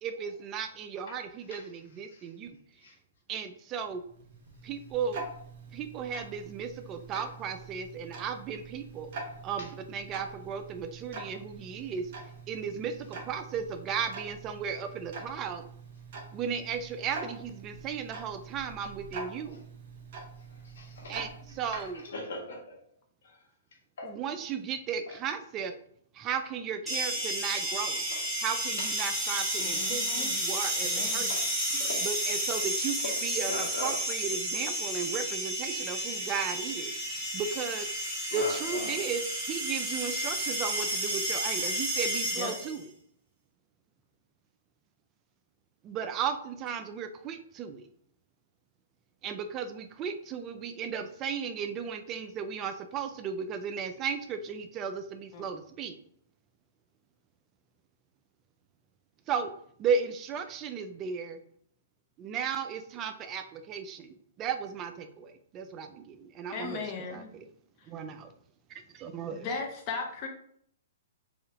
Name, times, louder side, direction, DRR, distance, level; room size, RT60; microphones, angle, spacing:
voice 1, 0.0-2.6 3.3-4.0 4.6-5.2 5.7-9.1 9.4-12.1 12.5-15.7 16.3-19.6 21.1-22.0 24.0-25.8 26.1-28.0 28.4-31.3 32.0-36.9 37.3-37.9 38.3-42.9 45.8-47.9 49.2-55.9 59.3-59.5 59.8-61.4 62.2-66.8 67.1-67.4 67.9-68.3 68.7-69.4, right 6 dB, 25° right, 7 dB, 0.3 m, -35 dB
Tick-tock, 3.8-22.1, right 3 dB, 50° right, 1.1 m, -45 dB
voice 2, 20.8-21.1 21.7-22.7 24.0-24.1 28.8-28.9 31.3-31.4 31.8-32.0 33.5-34.0 38.3-39.0, left 2 dB, 70° left, 0 dB, 1.3 m, -39 dB
sound 1, 26.9-42.8, right 1 dB, 5° right, 1.2 m, -31 dB
voice 3, 29.6-30.3 30.8-31.3 42.3-42.5 55.3-55.4 66.5-67.3 67.8-67.9 69.3-70.3, left 5 dB, 35° left, 2 dB, 0.6 m, -37 dB
3.4 x 2.7 x 3.5 m, 0.65 s
hypercardioid pair, 145°, 0 cm